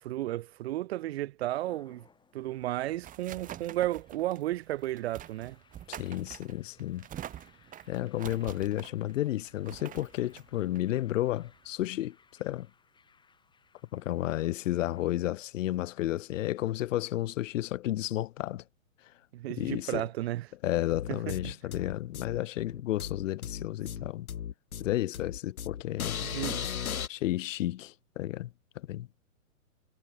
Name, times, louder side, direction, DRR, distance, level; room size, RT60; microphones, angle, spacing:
voice 1, 0.0-2.0 2.3-5.6 19.3-20.5 21.1-21.3 26.2-26.6, right 15 dB, 45° right, 1.6 m, -33 dB
sound 1, 1.5-15.1, left 5 dB, 10° left, 5.8 m, -65 dB
sound 2, 2.4-11.7, right 11 dB, 20° right, 2.9 m, -47 dB
voice 2, 5.9-7.1 7.9-12.7 13.9-18.6 19.6-20.1 20.6-24.3 24.8-26.2 27.1-29.1, left 14 dB, 65° left, 0.6 m, -32 dB
sound 3, 20.9-27.1, left 8 dB, 80° left, 2.3 m, -36 dB
hypercardioid pair, 140°, 42 cm